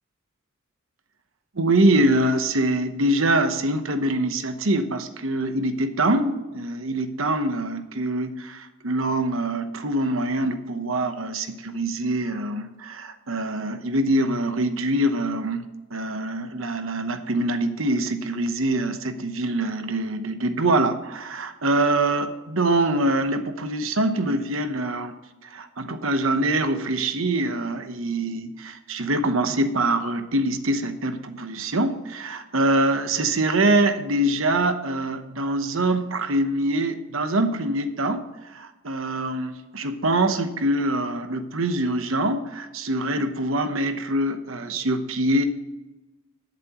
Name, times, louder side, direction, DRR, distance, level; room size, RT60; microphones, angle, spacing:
voice 1, 1.5-25.1 25.4-45.4, right 1 dB, 75° right, 8 dB, 1.0 m, -24 dB
20.5 x 7.5 x 3.1 m, 1.1 s
head